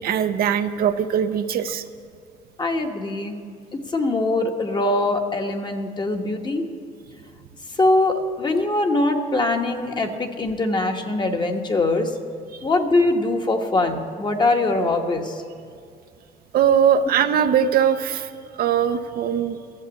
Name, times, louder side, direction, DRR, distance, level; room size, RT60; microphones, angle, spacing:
voice 1, 0.0-1.8 12.5-12.7 16.5-18.3 18.6-19.6, right 8 dB, 60° right, 8 dB, 0.7 m, -21 dB
voice 2, 2.6-3.4 3.7-6.7 7.7-12.1 12.6-15.4, left 2 dB, 25° left, 4 dB, 1.2 m, -22 dB
14.0 x 7.4 x 8.4 m, 2.3 s
cardioid pair, 110°, 17 cm